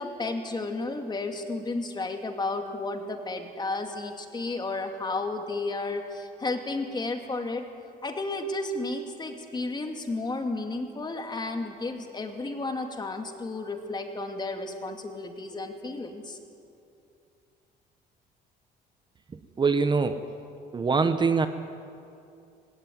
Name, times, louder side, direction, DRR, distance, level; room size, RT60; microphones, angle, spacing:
voice 1, 0.0-7.6 8.0-16.4, left 2 dB, 25° left, 5 dB, 2.4 m, -32 dB
voice 2, 19.6-20.2 20.7-21.5, right 4 dB, 25° right, 9 dB, 1.0 m, -23 dB
19.5 x 17.5 x 9.4 m, 2.6 s
cardioid pair, 110°, 17 cm